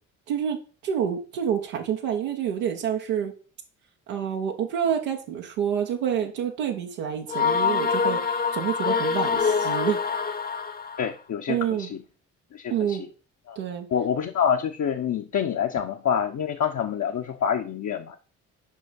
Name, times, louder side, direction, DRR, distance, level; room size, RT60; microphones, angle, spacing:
voice 1, 0.3-0.6 0.8-3.3 4.1-10.0 11.5-11.9 12.7-13.0 13.5-13.9, right 8 dB, 85° right, 1 dB, 1.2 m, -28 dB
sound 1, 7.3-11.1, left 5 dB, 25° left, 1.0 m, -25 dB
voice 2, 11.0-12.0 12.5-13.1 13.5-13.6 13.9-18.2, left 8 dB, 50° left, 3 dB, 1.0 m, -27 dB
6.3 x 5.1 x 5.7 m, 0.37 s
hypercardioid pair, 50°, 38 cm